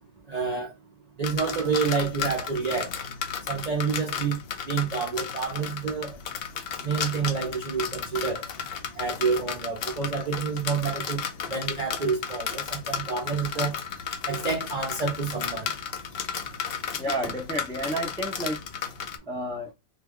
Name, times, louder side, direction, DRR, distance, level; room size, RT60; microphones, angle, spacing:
voice 1, 0.3-0.7 1.2-2.9 3.5-4.4 4.7-6.1 6.8-8.4 9.0-11.2 11.5-13.7 14.3-15.7, right 5 dB, 50° right, 0.5 m, -28 dB
sound 1, 1.2-19.2, left 7 dB, 60° left, 0.6 m, -34 dB
voice 2, 17.0-18.6 19.3-19.7, right 1 dB, 5° left, 0.4 m, -30 dB
2.9 x 2.3 x 3.5 m
omnidirectional pair, 1.4 m